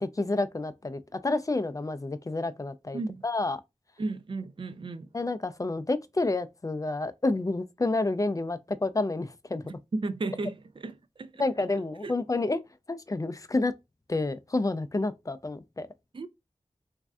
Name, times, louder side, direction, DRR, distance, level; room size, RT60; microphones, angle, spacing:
voice 1, 0.0-3.6 5.1-9.6 11.4-12.6 12.9-13.7 14.1-15.9, left 2 dB, 30° left, 0.3 m, -29 dB
voice 2, 2.9-3.2 4.0-5.1 9.6-11.4 12.0-12.2 16.1-16.3, right 3 dB, 45° right, 0.4 m, -34 dB
3.2 x 2.5 x 2.3 m
wide cardioid pair, 55°, 12 cm